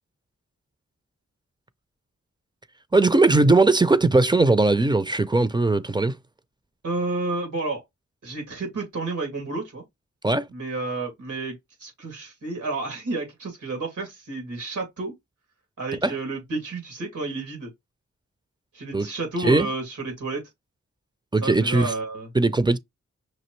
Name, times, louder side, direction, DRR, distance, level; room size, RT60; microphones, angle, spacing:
voice 1, 2.9-6.2 10.2-10.5 16.0-16.1 18.9-19.1 19.4-19.7 21.3-21.9 22.3-22.8, right 2 dB, 15° right, 0.5 m, -19 dB
voice 2, 6.8-7.8 8.2-9.8 10.5-15.1 15.8-17.7 18.7-20.4 21.4-22.3, right 3 dB, 90° right, 2.5 m, -31 dB
6.0 x 2.5 x 3.2 m
cardioid pair, 50°, 30 cm